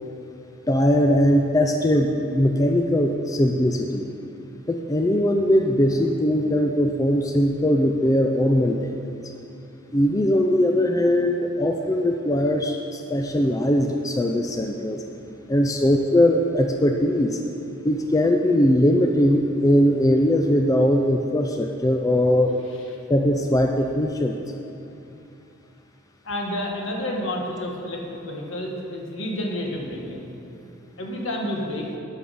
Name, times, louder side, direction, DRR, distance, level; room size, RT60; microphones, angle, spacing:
voice 1, 0.7-4.0 4.7-9.0 9.9-15.0 15.5-17.4 17.8-22.6 23.1-24.4, left 1 dB, 15° left, 3 dB, 0.4 m, -20 dB
voice 2, 26.2-30.3 31.0-31.9, left 1 dB, 65° left, -1 dB, 1.6 m, -30 dB
12.5 x 6.3 x 5.4 m, 2.9 s
head